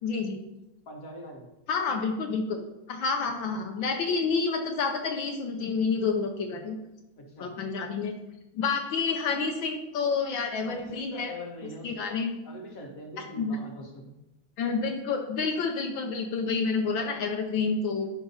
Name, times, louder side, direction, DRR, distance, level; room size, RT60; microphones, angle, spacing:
voice 1, 0.0-0.4 1.7-6.8 7.4-8.1 8.5-11.3 11.8-12.4 13.4-13.6 14.6-18.1, left 4 dB, 70° left, 4 dB, 1.4 m, -29 dB
voice 2, 0.9-1.5 7.2-7.5 10.7-14.1, left 1 dB, 45° left, 1 dB, 1.7 m, -42 dB
11.0 x 3.8 x 5.5 m, 0.95 s
omnidirectional pair, 2.3 m